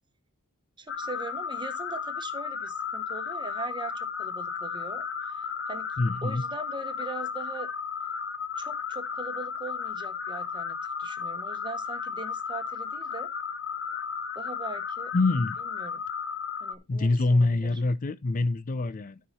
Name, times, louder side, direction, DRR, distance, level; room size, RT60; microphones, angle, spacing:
voice 1, 0.8-5.9 6.2-7.7 8.6-13.3 14.3-15.1 15.7-16.0 16.6-17.8, right 3 dB, 20° right, 1.1 m, -41 dB
sound 1, 0.9-16.7, left 6 dB, 55° left, 0.9 m, -34 dB
voice 2, 6.0-6.4 15.1-15.6 16.9-19.2, left 2 dB, 40° left, 0.5 m, -25 dB
13.0 x 4.8 x 4.2 m
head